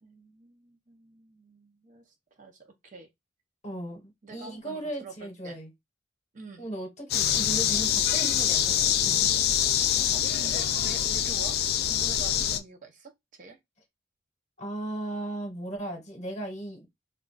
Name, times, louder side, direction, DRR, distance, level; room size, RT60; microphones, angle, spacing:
voice 1, 0.0-3.1 4.2-5.6 6.3-6.7 10.1-11.6 11.9-13.6, right 3 dB, 40° right, 0.5 m, -46 dB
voice 2, 3.6-4.0 4.3-5.7 6.6-9.3 14.6-16.9, right 1 dB, 35° left, 0.9 m, -36 dB
sound 1, 7.1-12.6, left 10 dB, 55° left, 0.3 m, -25 dB
2.3 x 2.2 x 3.8 m
head